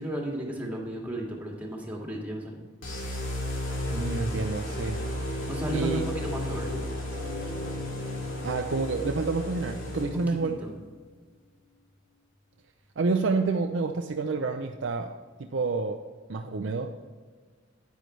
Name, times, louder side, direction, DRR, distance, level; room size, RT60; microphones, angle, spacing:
voice 1, 0.0-2.6 5.5-6.9 10.0-10.7, right 1 dB, 10° right, -2 dB, 1.9 m, -34 dB
sound 1, 2.8-10.5, left 1 dB, 85° left, 2.6 m, -33 dB
voice 2, 3.9-5.0 5.3-5.5 5.7-6.0 8.4-10.6 13.0-15.1 15.4-16.0 16.3-16.9, right 3 dB, 70° right, 4 dB, 0.5 m, -28 dB
sound 2, 7.1-12.1 12.9-13.0 13.3-13.4, left 4 dB, 25° right, 1.6 m, -47 dB
10.0 x 9.3 x 3.2 m, 1.5 s
head